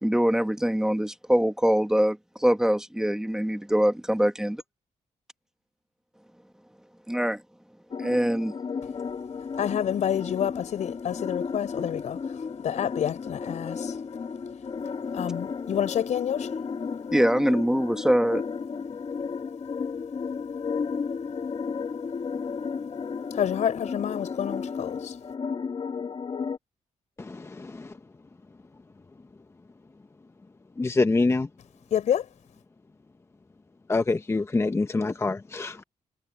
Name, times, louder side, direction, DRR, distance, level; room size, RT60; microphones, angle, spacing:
voice 1, 0.0-4.6 7.1-7.4 8.0-8.5 17.1-18.4, equal, 5° right, 1.6 m, -23 dB
sound 1, 7.9-26.6, left 5 dB, 45° left, 1.6 m, -33 dB
voice 2, 9.6-14.0 15.1-16.6 23.3-25.2 31.9-32.3, left 9 dB, 75° left, 4.5 m, -28 dB
voice 3, 27.2-27.9 30.8-31.5 33.9-35.8, left 3 dB, 20° left, 0.9 m, -26 dB
cardioid pair, 100°, 12 cm